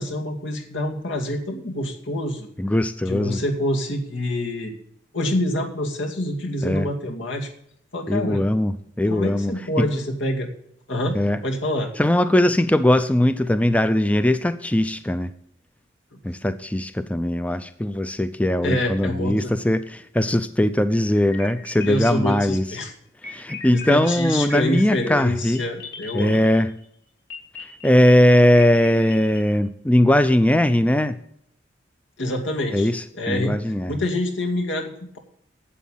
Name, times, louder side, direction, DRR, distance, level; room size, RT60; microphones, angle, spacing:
voice 1, 0.0-2.5 3.1-4.7 5.1-7.5 7.9-8.4 9.1-10.5 10.9-11.9 16.1-16.2 18.6-19.5 21.9-22.9 23.7-26.4 32.2-32.9 33.1-33.5 33.9-35.2, left 1 dB, 85° left, 2 dB, 2.4 m, -26 dB
voice 2, 2.6-3.4 6.6-6.9 8.1-9.5 9.8-9.9 11.1-11.4 12.0-15.3 16.2-22.7 23.2-25.6 26.1-26.7 27.6-31.2 32.7-33.9, left 1 dB, 5° left, 12 dB, 0.4 m, -20 dB
sound 1, 21.1-22.6 23.2-26.8 27.3-29.4, left 4 dB, 50° left, 3.4 m, -38 dB
11.5 x 8.3 x 7.2 m, 0.71 s
head